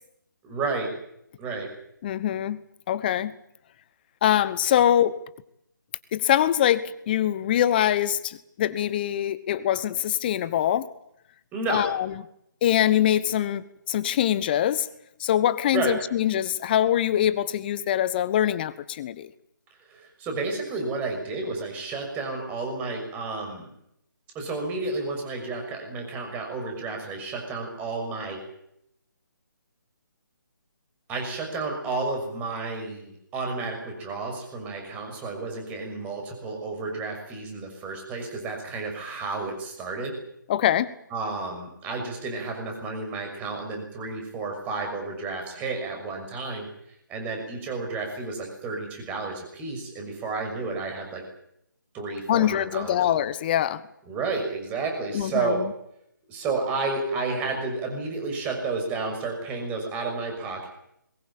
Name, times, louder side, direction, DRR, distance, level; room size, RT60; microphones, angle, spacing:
voice 1, 0.4-0.9 1.4-1.7 11.5-12.0 15.7-16.0 19.9-23.7 24.3-28.4 31.1-40.1 41.1-46.7 47.1-51.2 51.9-53.2 54.1-55.6 56.3-60.7, right 3 dB, 15° right, 3 dB, 6.2 m, -31 dB
voice 2, 2.0-2.6 2.9-3.3 4.2-5.2 6.1-10.9 11.7-12.1 12.6-14.9 15.2-19.3 40.5-40.9 52.3-53.8 55.1-55.7, left 11 dB, 30° left, 16 dB, 1.2 m, -23 dB
22.0 x 20.0 x 8.8 m, 0.76 s
figure-of-eight pair, 150°, 11 cm